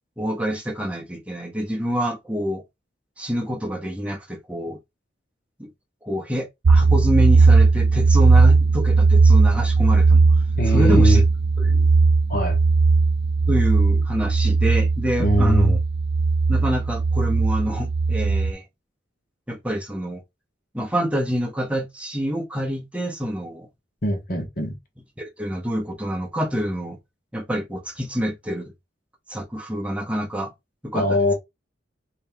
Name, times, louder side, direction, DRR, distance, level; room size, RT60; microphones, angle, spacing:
voice 1, 0.2-2.6 3.2-4.8 5.6-5.7 6.0-10.2 10.6-11.2 11.6-11.9 13.5-15.8 16.5-18.6 19.5-20.2 20.7-23.7 25.2-27.0 27.3-28.7 29.3-30.5 30.8-31.3, equal, 5° right, 0.8 m, -27 dB
sound 1, 6.6-18.5, right 4 dB, 65° right, 0.5 m, -17 dB
voice 2, 10.6-11.2 12.3-12.6 15.2-15.7 24.0-24.7 30.9-31.3, left 1 dB, 50° left, 1.0 m, -21 dB
3.3 x 2.9 x 3.4 m
head